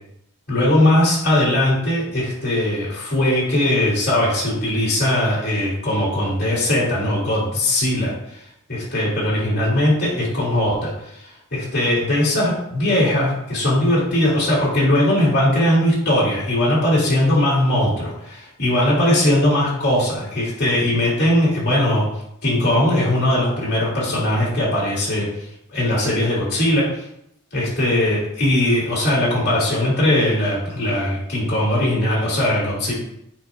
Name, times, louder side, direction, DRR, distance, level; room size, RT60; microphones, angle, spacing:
voice 1, 0.5-8.4 8.7-11.2 11.5-22.0 22.4-25.3 25.7-27.0 27.5-32.9, left 1 dB, 50° left, -6 dB, 2.5 m, -19 dB
9.2 x 4.9 x 2.4 m, 0.77 s
head